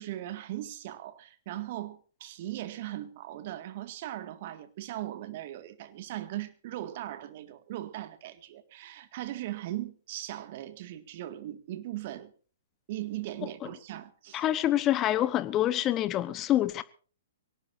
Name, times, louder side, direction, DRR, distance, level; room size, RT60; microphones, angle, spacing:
voice 1, 0.0-12.3 12.9-14.4, right 14 dB, 50° right, 2.0 m, -39 dB
voice 2, 14.3-16.8, left 13 dB, 30° left, 1.0 m, -26 dB
23.5 x 18.0 x 2.7 m
hypercardioid pair, 120°, 0 cm